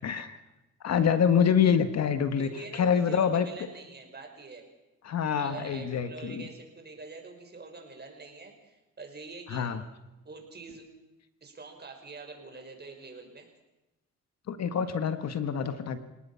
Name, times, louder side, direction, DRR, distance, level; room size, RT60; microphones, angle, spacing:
voice 1, 0.0-0.4 0.8-3.5 5.0-6.4 9.5-9.8 14.5-16.0, left 7 dB, 60° left, 10 dB, 1.7 m, -26 dB
voice 2, 2.4-4.6 5.3-9.7 10.2-10.9 11.4-13.5, right 3 dB, 35° right, 3 dB, 5.9 m, -45 dB
29.0 x 18.5 x 5.8 m, 1.0 s
cardioid pair, 90°, 30 cm